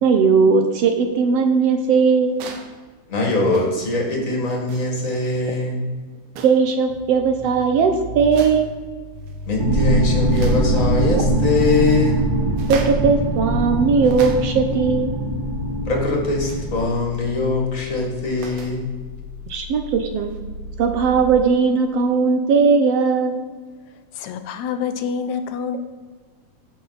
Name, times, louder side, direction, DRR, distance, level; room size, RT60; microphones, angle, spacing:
voice 1, 0.0-2.4 6.4-8.7 12.7-15.1 19.5-20.3 20.8-23.4, right 5 dB, 70° right, 6 dB, 1.6 m, -18 dB
sound 1, 2.3-2.8 3.5-3.9 4.6-5.0 6.3-6.8 8.2-8.8 9.2-9.6 9.9-10.7 12.5-13.1 13.8-14.7 16.4-16.7 18.1-18.8 20.3-20.4, right 5 dB, 90° right, 2.6 m, -38 dB
voice 2, 3.1-5.9 9.5-12.2 15.9-18.9, left 3 dB, 30° left, 0 dB, 1.7 m, -22 dB
Futuristic Engine Powering Down, 6.9-21.3, left 3 dB, 60° left, 1.4 m, -35 dB
sound 2, 9.6-16.8, right 1 dB, 55° right, 1.0 m, -22 dB
voice 3, 23.8-25.8, left 6 dB, 80° left, 9 dB, 1.8 m, -27 dB
15.0 x 6.0 x 4.1 m, 1.4 s
omnidirectional pair, 3.5 m